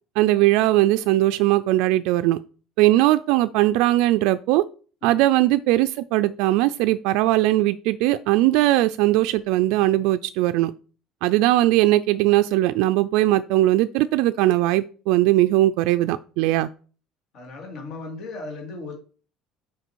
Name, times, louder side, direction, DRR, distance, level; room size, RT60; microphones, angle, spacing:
voice 1, 0.2-2.4 2.8-4.6 5.0-10.7 11.2-16.7, right 16 dB, 70° right, 0.3 m, -19 dB
voice 2, 17.3-18.9, left 3 dB, 40° left, 2.3 m, -36 dB
6.6 x 5.0 x 4.6 m
cardioid pair, 175°, 0 cm